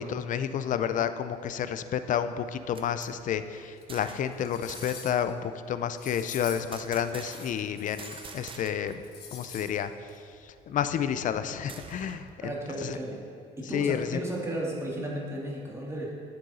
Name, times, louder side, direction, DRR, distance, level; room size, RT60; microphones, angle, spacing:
voice 1, 0.0-9.0 9.3-9.9 10.4-12.5 12.8-13.0 13.7-14.2, left 8 dB, 50° left, 11 dB, 0.5 m, -30 dB
sound 1, 2.4-4.4 4.7-5.2 6.7-7.7 8.0-9.1 9.3-9.4 9.8-12.4, right 4 dB, 30° right, 0.7 m, -47 dB
sound 2, 3.8-3.9 4.3-5.3 6.0-6.8 7.2-8.6 8.9-9.8 10.1-10.2, left 7 dB, 70° left, 1.2 m, -45 dB
voice 2, 12.4-13.2 13.6-16.1, right 1 dB, 15° right, -2 dB, 1.8 m, -34 dB
9.7 x 7.6 x 4.1 m, 2.4 s
cardioid pair, 110°, 17 cm